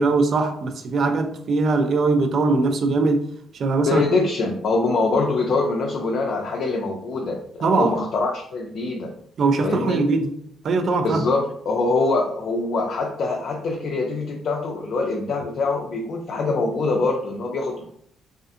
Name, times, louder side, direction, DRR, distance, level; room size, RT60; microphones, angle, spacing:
voice 1, 0.0-3.3 3.5-4.0 7.6-7.9 9.4-10.3 10.6-11.2, right 3 dB, 55° right, 0.4 m, -21 dB
voice 2, 3.9-9.1 9.6-10.0 11.0-17.9, left 3 dB, 65° left, 0.4 m, -24 dB
2.4 x 2.4 x 2.6 m
cardioid pair, 90°, 0 cm